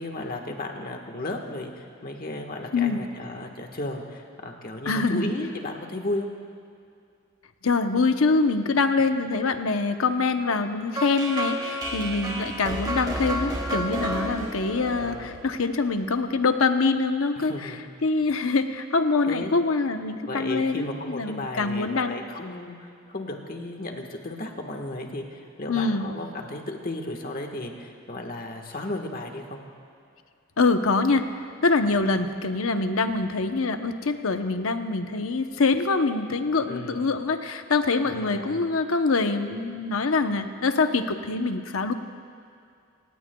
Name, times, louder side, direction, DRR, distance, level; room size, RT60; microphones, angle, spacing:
voice 1, 0.0-6.3 8.9-9.0 14.9-15.4 17.3-17.8 19.3-19.6 20.2-29.6 36.4-37.0 38.0-38.6, left 2 dB, 45° left, 3 dB, 1.4 m, -34 dB
voice 2, 2.7-3.0 4.9-5.2 7.6-22.2 25.7-26.1 30.6-41.9, left 3 dB, 80° left, 7 dB, 0.8 m, -24 dB
sound 1, 10.9-15.9, right 1 dB, 20° right, 1.4 m, -31 dB
26.5 x 17.0 x 2.3 m, 2.4 s
head